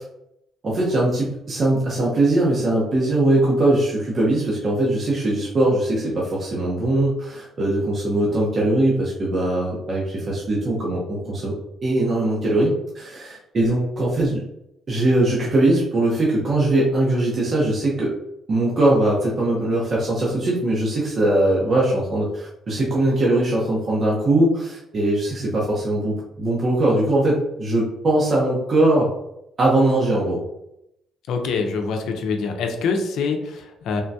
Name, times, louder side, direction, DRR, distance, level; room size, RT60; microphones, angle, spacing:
voice 1, 0.6-11.5 11.8-14.4 14.9-18.1 18.5-29.1 29.6-30.4, right 1 dB, 45° right, -4 dB, 0.8 m, -21 dB
voice 2, 31.3-34.0, left 4 dB, 80° left, 4 dB, 0.5 m, -25 dB
3.6 x 2.2 x 2.7 m, 0.81 s
cardioid pair, 90°, 0 cm